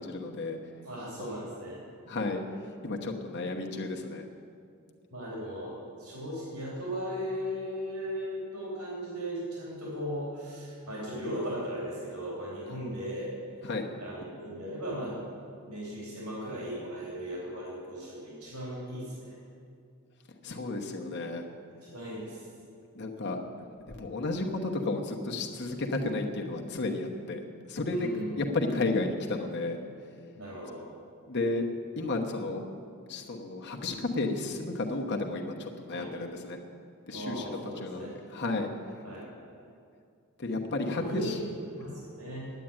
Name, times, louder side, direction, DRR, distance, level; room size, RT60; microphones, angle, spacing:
voice 1, 0.0-0.7 2.1-4.3 12.7-12.8 13.6-13.9 20.4-21.5 22.9-28.1 28.4-30.2 31.3-31.6 32.0-32.6 33.1-36.6 37.1-39.2 40.4-41.4, left 2 dB, 50° left, 1 dB, 1.1 m, -33 dB
voice 2, 0.8-1.8 5.1-13.3 14.0-15.2 15.5-19.4 21.8-22.5 27.8-28.3 30.3-30.9 35.9-36.1 37.1-38.1 39.0-39.6 40.9-42.5, equal, 85° right, -6 dB, 3.7 m, -37 dB
10.0 x 9.2 x 8.9 m, 2.3 s
head